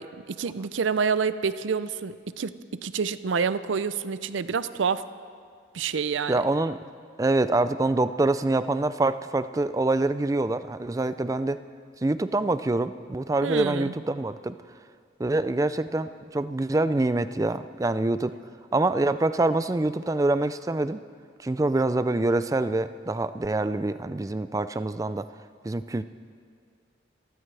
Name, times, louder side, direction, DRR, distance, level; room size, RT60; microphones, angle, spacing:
voice 1, 0.0-2.5 2.8-5.0 5.7-6.4 13.4-13.9, right 5 dB, 85° right, 14 dB, 0.5 m, -28 dB
voice 2, 6.3-6.8 7.2-11.6 12.0-14.6 15.2-18.3 18.7-21.0 21.4-25.3 25.6-26.0, right 2 dB, 15° right, 13 dB, 0.3 m, -25 dB
28.0 x 14.0 x 3.4 m, 2.1 s
head